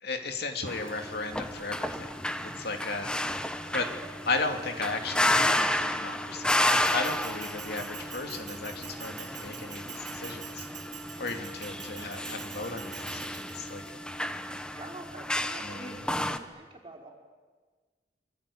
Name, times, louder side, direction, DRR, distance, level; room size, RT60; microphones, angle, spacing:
voice 1, 0.0-3.4 3.7-3.9 4.3-10.7 11.2-13.8 15.6-16.0, left 3 dB, 65° left, 4 dB, 2.6 m, -35 dB
sound 1, 0.7-16.4, left 1 dB, 5° left, 1.1 m, -32 dB
Bell, 6.5-13.9, right 11 dB, 45° right, 1.2 m, -46 dB
sound 2, 7.1-7.4 8.1-8.4 9.1-9.3 10.1-10.4 11.1-11.6 12.1-13.6, right 1 dB, 10° right, 5.7 m, -58 dB
voice 2, 14.7-17.1, right 2 dB, 30° right, 0 dB, 4.7 m, -45 dB
25.0 x 25.0 x 8.6 m, 1.4 s
head